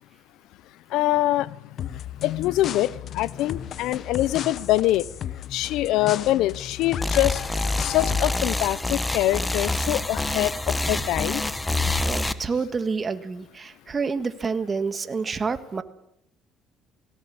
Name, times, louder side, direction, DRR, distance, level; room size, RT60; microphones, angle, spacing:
voice 1, 0.9-1.5 2.2-5.0 5.5-7.4 7.8-10.5 10.9-11.4, left 15 dB, 80° left, 21 dB, 0.8 m, -24 dB
sound 1, 1.8-8.6, left 10 dB, 60° left, 1.0 m, -35 dB
sound 2, 7.0-12.3, left 2 dB, 10° left, 1.3 m, -26 dB
voice 2, 12.0-15.8, right 5 dB, 30° right, 11 dB, 1.7 m, -28 dB
18.0 x 17.5 x 8.7 m, 0.75 s
cardioid pair, 90°, 0 cm